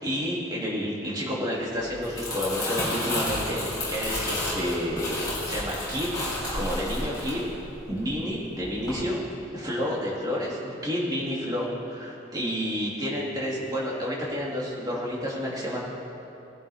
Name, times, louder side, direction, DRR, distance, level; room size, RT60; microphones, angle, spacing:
voice 1, 0.0-3.6 3.9-6.1 6.5-7.4 7.9-9.2 9.5-15.8, equal, 20° right, -5 dB, 2.6 m, -30 dB
Crumpling crinkling, 1.9-8.3 8.6-8.9, left 1 dB, 20° left, 3.7 m, -31 dB
19.5 x 11.0 x 3.5 m, 2.8 s
head